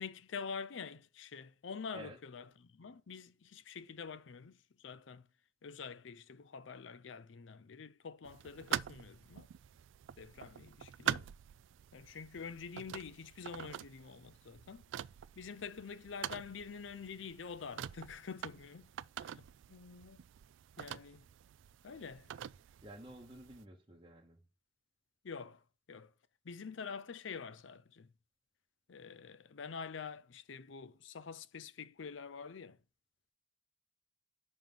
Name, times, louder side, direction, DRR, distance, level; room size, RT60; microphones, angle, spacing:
voice 1, 0.0-5.3 5.6-9.5 10.2-11.3 11.9-14.8 15.4-18.9 19.2-20.2 20.8-21.2 21.8-22.3 25.2-25.6 25.9-26.1 26.4-28.1 28.9-32.8, left 5 dB, 75° left, 0.5 m, -47 dB
sound 1, 8.2-23.6, right 10 dB, 75° right, 0.3 m, -45 dB
voice 2, 22.8-24.4, equal, 25° right, 0.9 m, -51 dB
5.9 x 5.4 x 3.8 m
head